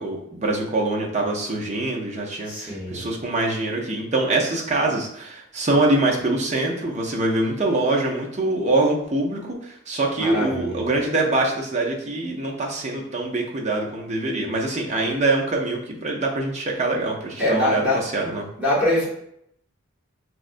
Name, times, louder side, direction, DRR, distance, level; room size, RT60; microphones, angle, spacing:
voice 1, 0.0-18.5, right 2 dB, 30° right, -1 dB, 0.5 m, -24 dB
voice 2, 2.5-3.1 10.1-10.9 15.0-15.1 17.4-18.1 18.6-19.1, left 1 dB, 5° right, -8 dB, 1.1 m, -23 dB
4.7 x 2.1 x 2.5 m, 0.74 s
head